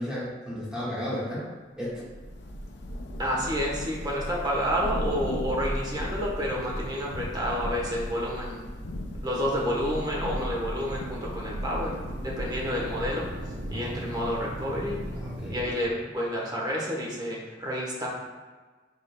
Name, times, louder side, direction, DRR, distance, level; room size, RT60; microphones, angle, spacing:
voice 1, 0.0-1.4 1.8-1.9 13.6-14.0 15.1-15.6, equal, 5° right, -8 dB, 1.4 m, -34 dB
Thunder / Rain, 1.9-16.0, equal, 75° left, 0.5 m, -36 dB
voice 2, 3.2-8.6 9.2-12.0 12.2-13.3 13.7-15.0 15.5-18.1, equal, 25° right, -3 dB, 1.0 m, -29 dB
sound 1, 9.8-15.7, right 1 dB, 75° right, 0.6 m, -40 dB
6.5 x 3.6 x 2.2 m, 1.4 s
head